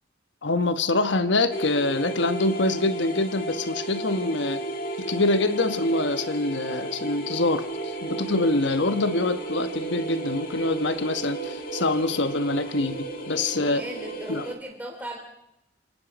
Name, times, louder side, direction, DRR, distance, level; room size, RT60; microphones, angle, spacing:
voice 1, 0.4-4.6 5.1-13.8 14.3-14.5, left 2 dB, 70° left, 11 dB, 1.1 m, -25 dB
sound 1, 1.5-14.6, right 2 dB, 45° left, 2.0 m, -34 dB
voice 2, 13.5-15.2, right 1 dB, 10° right, 1 dB, 3.7 m, -37 dB
27.5 x 18.0 x 5.2 m, 0.83 s
head